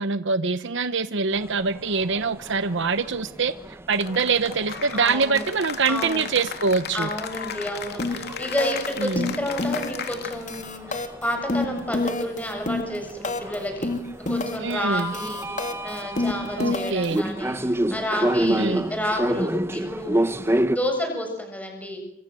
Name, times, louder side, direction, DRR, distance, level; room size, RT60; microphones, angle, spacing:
voice 1, 0.0-3.5 3.9-7.1 9.0-9.3 14.6-15.1 16.6-17.2 18.4-18.8, right 4 dB, 65° right, 12 dB, 1.0 m, -24 dB
sound 1, 1.3-20.8, right 1 dB, 15° right, 1.0 m, -30 dB
Cheering / Applause, 3.9-10.6, left 6 dB, 55° left, 3.1 m, -35 dB
voice 2, 4.9-5.5 5.9-6.3 6.9-13.9 14.3-22.0, left 1 dB, 10° left, 4 dB, 7.4 m, -30 dB
sound 2, 8.0-8.3 8.6-8.9 9.2-10.0 10.3-13.5 13.8-14.7 15.0-17.2, left 2 dB, 40° left, 3.2 m, -27 dB
29.0 x 26.0 x 7.7 m, 0.80 s
head